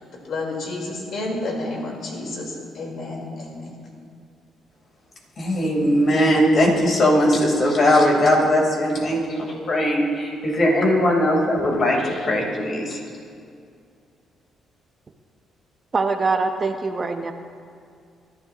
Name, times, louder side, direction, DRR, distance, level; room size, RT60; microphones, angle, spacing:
voice 1, 0.2-3.8, left 2 dB, 65° left, -2 dB, 4.2 m, -30 dB
voice 2, 5.4-13.0, equal, 50° left, -1 dB, 4.0 m, -19 dB
voice 3, 15.9-17.3, right 4 dB, 35° right, 6 dB, 0.9 m, -23 dB
25.5 x 12.0 x 3.0 m, 2.3 s
cardioid pair, 90°, 0 cm